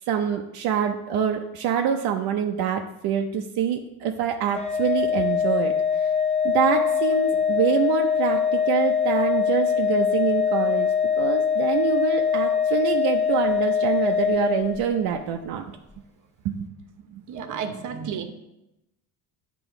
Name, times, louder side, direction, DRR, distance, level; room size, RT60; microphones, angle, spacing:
voice 1, 0.1-6.1 6.4-15.6 16.4-16.7 17.1-17.2, right 8 dB, 75° right, 3 dB, 0.6 m, -26 dB
Organ, 4.5-15.2, left 7 dB, 20° left, 0.4 m, -23 dB
voice 2, 17.3-18.2, right 7 dB, 55° right, 7 dB, 0.9 m, -31 dB
8.9 x 3.0 x 4.7 m, 0.91 s
cardioid pair, 110°, 37 cm